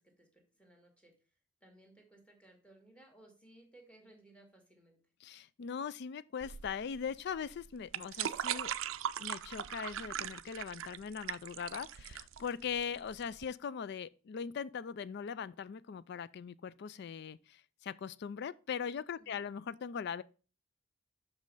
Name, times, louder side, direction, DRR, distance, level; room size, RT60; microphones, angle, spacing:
voice 1, 0.0-5.0 19.2-19.5, right 1 dB, 5° left, 1.7 m, -61 dB
voice 2, 5.2-8.7 9.2-20.2, left 7 dB, 55° left, 0.4 m, -40 dB
sound 1, 6.4-13.4, right 10 dB, 90° right, 0.4 m, -40 dB
6.1 x 5.3 x 5.4 m
head